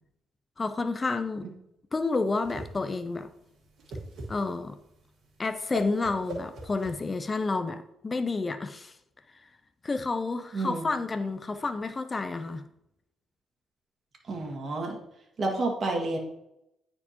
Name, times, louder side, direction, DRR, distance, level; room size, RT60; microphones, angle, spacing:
voice 1, 0.6-1.5 1.9-3.3 4.3-4.8 5.4-9.0 9.3-9.5 9.8-12.6, left 3 dB, 30° left, 9 dB, 0.4 m, -30 dB
Whoosh swoosh swish, 2.0-7.5, right 2 dB, 70° right, 1.5 m, -41 dB
voice 2, 10.5-10.8 14.3-15.0 15.4-16.2, right 2 dB, 45° right, 0 dB, 1.7 m, -29 dB
9.5 x 4.4 x 2.8 m, 0.83 s
cardioid pair, 90°, 0 cm